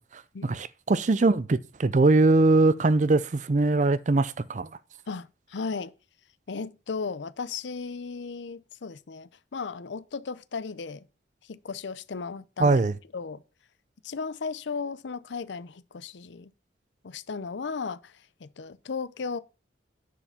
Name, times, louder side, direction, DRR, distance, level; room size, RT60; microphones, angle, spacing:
voice 1, 0.0-4.7 12.6-12.9, right 3 dB, 40° right, 0.5 m, -22 dB
voice 2, 5.1-5.9 6.5-11.1 11.4-12.8 13.1-13.4 14.0-16.5 17.0-19.4, left 5 dB, 75° left, 0.6 m, -35 dB
10.0 x 4.9 x 5.7 m
head